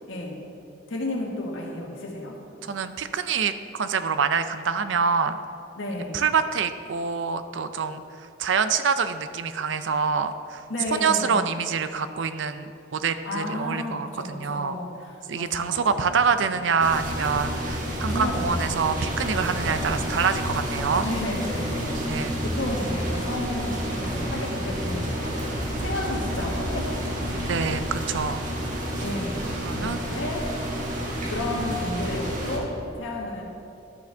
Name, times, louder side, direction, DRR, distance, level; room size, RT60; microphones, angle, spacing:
voice 1, 0.1-0.4 0.9-2.8 5.7-6.2 10.7-11.4 13.2-16.2 18.0-19.6 21.0-25.6 25.8-27.8 29.0-30.5 31.2-33.4, left 1 dB, 85° left, -1 dB, 1.6 m, -33 dB
voice 2, 2.6-5.4 6.1-10.6 10.9-14.7 15.3-21.1 22.1-22.3 27.5-28.4 29.0-29.1 29.6-30.1, right 5 dB, 75° right, 11 dB, 0.5 m, -26 dB
sound 1, 16.8-32.6, equal, 45° right, 1.4 m, -30 dB
sound 2, 17.9-20.0 20.4-21.1 21.5-24.5 24.8-27.2, equal, 15° left, 1.3 m, -35 dB
12.0 x 7.5 x 3.4 m, 2.5 s
head